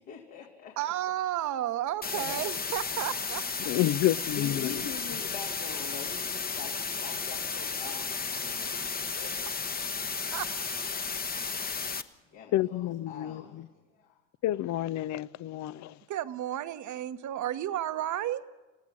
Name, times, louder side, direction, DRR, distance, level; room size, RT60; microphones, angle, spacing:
voice 1, 0.0-0.8 2.0-2.4 3.7-3.9 4.3-9.3 12.3-14.2, left 7 dB, 70° left, 3.0 m, -44 dB
voice 2, 0.8-3.4 9.8-9.9 10.3-10.5 16.1-18.4, right 12 dB, 50° right, 1.1 m, -32 dB
sound 1, 2.0-12.0, left 5 dB, 25° left, 1.1 m, -33 dB
voice 3, 3.7-4.7 12.5-13.4 14.4-16.0, left 14 dB, 50° left, 0.7 m, -29 dB
28.5 x 15.5 x 6.4 m
hypercardioid pair, 65°, 37 cm